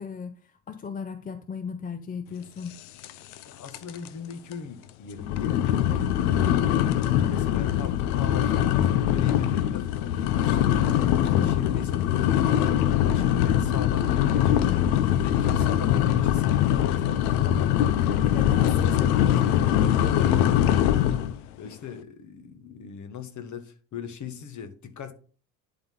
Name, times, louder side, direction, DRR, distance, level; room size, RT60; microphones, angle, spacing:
voice 1, 0.0-2.8 5.9-6.1 11.2-11.6 13.0-13.2 18.2-20.3, left 6 dB, 20° left, 0.6 m, -37 dB
sound 1, 3.0-3.4 3.7-4.1 4.5-4.6 5.2-21.4, left 11 dB, 70° left, 0.8 m, -22 dB
voice 2, 3.5-10.9 11.4-12.7 13.0-14.9 15.2-18.0 18.7-21.2 21.6-25.1, left 6 dB, 40° left, 1.4 m, -40 dB
11.0 x 3.9 x 3.9 m
hypercardioid pair, 70°, 45 cm